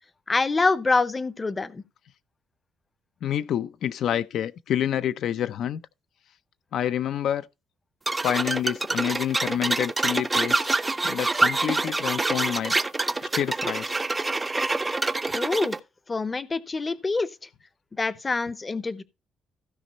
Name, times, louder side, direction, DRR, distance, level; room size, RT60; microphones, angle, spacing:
voice 1, 0.3-1.8 15.3-15.8 16.1-17.3 17.9-19.0, left 3 dB, 20° left, 0.7 m, -25 dB
voice 2, 3.2-5.8 6.7-7.5 8.2-10.6 11.0-12.8 13.2-14.0, left 10 dB, 65° left, 0.5 m, -28 dB
sound 1, 8.1-15.8, right 3 dB, 15° right, 0.5 m, -26 dB
15.5 x 5.2 x 4.1 m
cardioid pair, 140°, 0 cm